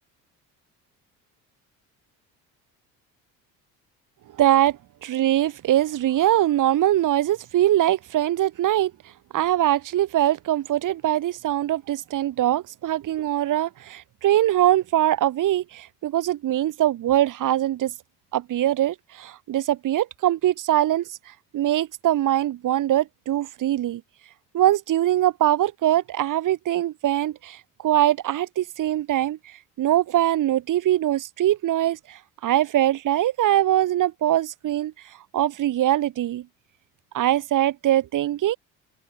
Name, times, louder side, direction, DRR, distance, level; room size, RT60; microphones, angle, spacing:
voice 1, 4.4-8.9 9.3-17.9 18.3-21.0 21.5-24.0 24.5-27.6 27.8-29.4 29.8-34.9 35.3-36.4 37.1-38.6, right 13 dB, 40° right, 1.1 m, -22 dB
figure-of-eight pair, 55°, 49 cm